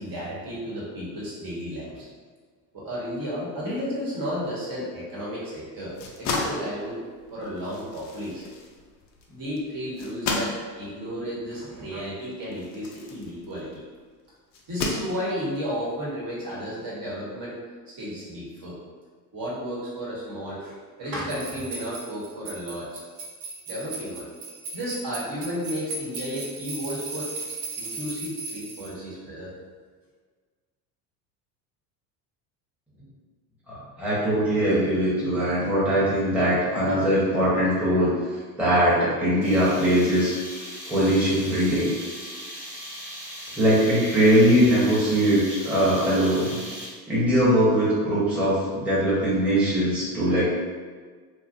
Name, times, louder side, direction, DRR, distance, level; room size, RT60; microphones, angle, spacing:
voice 1, 0.0-2.1 2.7-7.0 7.3-8.5 9.3-13.8 14.7-17.6 17.9-18.8 19.3-23.0 23.7-24.3 24.7-27.3 27.8-29.5, equal, 45° right, -6 dB, 1.2 m, -33 dB
sound 1, 5.8-13.9 14.5-15.6, left 3 dB, 40° left, 0.5 m, -34 dB
sound 2, 21.3-28.9, right 3 dB, 65° right, 0.8 m, -37 dB
voice 2, 33.7-38.1 38.6-41.9 43.6-46.6 47.1-50.5, equal, 5° right, -10 dB, 0.9 m, -21 dB
sound 3, 39.4-47.1, equal, 25° right, 1.2 m, -39 dB
2.7 x 2.4 x 2.5 m, 1.5 s
hypercardioid pair, 85°, 48 cm